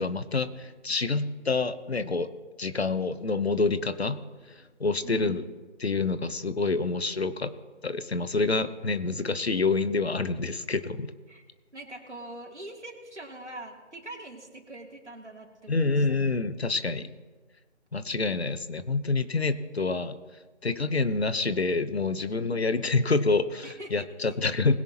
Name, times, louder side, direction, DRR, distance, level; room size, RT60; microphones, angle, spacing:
voice 1, 0.0-2.3 2.6-4.2 4.8-5.4 5.8-7.5 7.8-11.1 15.7-17.1 17.9-20.2 20.6-24.8, left 3 dB, 60° left, 12 dB, 1.0 m, -27 dB
voice 2, 5.0-5.4 11.3-11.4 11.7-16.2 23.6-23.9, right 2 dB, 70° right, 0 dB, 3.0 m, -43 dB
21.0 x 10.5 x 2.9 m, 1.3 s
figure-of-eight pair, 160°, 36 cm